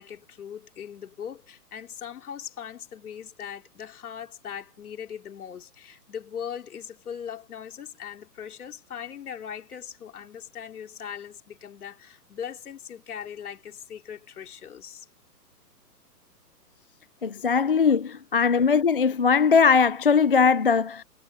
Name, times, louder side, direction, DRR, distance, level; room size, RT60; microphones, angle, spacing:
voice 1, 0.0-15.1, left 8 dB, 60° left, 4.2 m, -40 dB
voice 2, 17.2-21.0, left 6 dB, 35° left, 0.4 m, -20 dB
hypercardioid pair, 165°, 48 cm